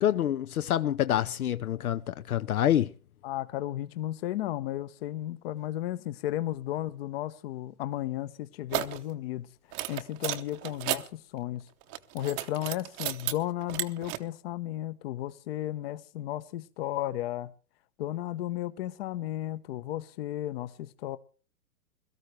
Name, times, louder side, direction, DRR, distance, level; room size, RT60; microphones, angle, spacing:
voice 1, 0.0-2.9, left 11 dB, 70° left, 0.8 m, -27 dB
voice 2, 3.2-9.5 9.9-11.6 12.1-17.5 18.0-21.2, left 13 dB, 40° left, 1.0 m, -34 dB
sound 1, 8.7-9.0 9.7-11.1 11.8-13.3 13.6-14.2, right 16 dB, 25° right, 0.8 m, -33 dB
22.0 x 13.0 x 3.3 m
hypercardioid pair, 135°, 46 cm